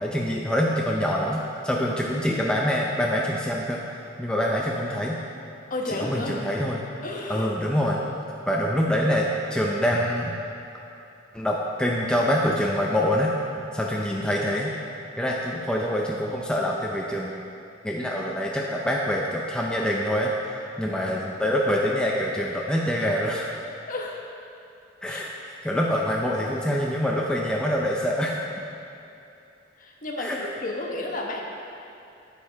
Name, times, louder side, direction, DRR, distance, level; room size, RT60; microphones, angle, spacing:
voice 1, 0.0-3.8 4.2-5.2 5.9-6.8 7.3-8.0 8.5-10.4 11.3-13.4 13.7-14.8 15.2-17.3 17.8-20.3 20.8-23.6 25.0-25.3 25.6-28.5 30.2-30.4, equal, 5° left, -3 dB, 0.6 m, -25 dB
voice 2, 5.7-6.4 7.0-7.5 23.9-24.2 25.1-25.2 29.8-31.4, left 2 dB, 45° left, -1 dB, 1.2 m, -32 dB
11.0 x 7.5 x 3.5 m, 2.7 s
head